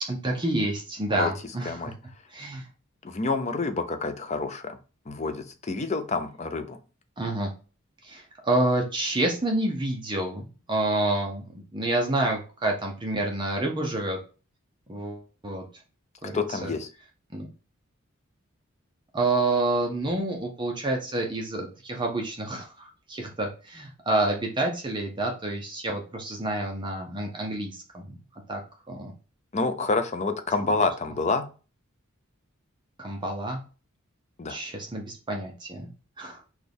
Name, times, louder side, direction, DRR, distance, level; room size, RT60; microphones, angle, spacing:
voice 1, 0.0-1.9 2.3-2.6 7.2-7.5 8.0-14.2 14.9-15.6 16.2-16.7 17.3-17.5 19.1-28.2 28.5-28.6 28.9-29.1 30.6-30.7 33.0-33.6 34.5-35.9 36.2-36.4, right 2 dB, 20° right, 1 dB, 0.7 m, -28 dB
voice 2, 3.0-4.8 5.1-6.8 16.3-16.9 29.5-31.5 34.4-34.6, left 3 dB, 30° left, 8 dB, 0.5 m, -28 dB
6.2 x 2.4 x 3.4 m, 0.34 s
head